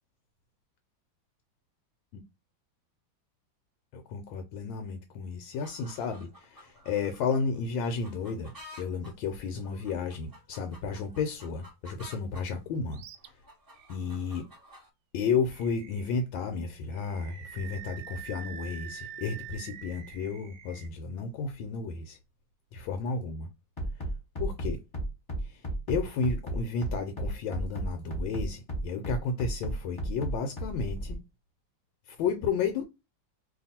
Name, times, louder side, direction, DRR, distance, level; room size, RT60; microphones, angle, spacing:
voice 1, 3.9-8.5 8.8-13.0 13.9-14.5 15.1-22.2 22.7-23.5 24.4-24.8 25.4-25.6 25.9-31.2 32.1-32.8, left 5 dB, 80° left, 1.3 m, -32 dB
sound 1, 5.5-12.5 12.9-14.9, left 1 dB, 30° right, 0.4 m, -52 dB
Animal, 12.9-13.3 13.7-13.9 15.5-16.2 16.9-20.9, right 10 dB, 90° right, 1.4 m, -45 dB
Bass drum, 23.8-31.2, right 1 dB, 20° left, 1.0 m, -33 dB
2.9 x 2.6 x 4.1 m
omnidirectional pair, 2.1 m